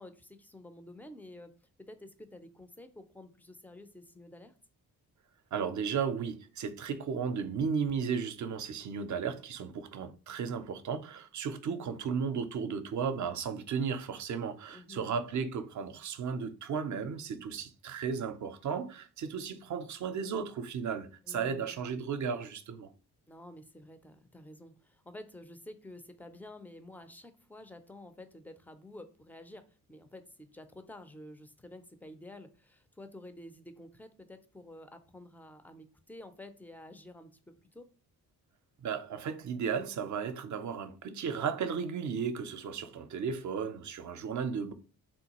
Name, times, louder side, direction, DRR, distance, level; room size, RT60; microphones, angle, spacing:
voice 1, 0.0-1.5 1.8-4.5 14.7-15.1 21.2-21.8 23.3-37.9, left 1 dB, 5° left, 0.4 m, -50 dB
voice 2, 5.5-22.9 38.8-44.7, right 6 dB, 50° right, 0.5 m, -34 dB
3.6 x 2.3 x 2.9 m
cardioid pair, 65°, 39 cm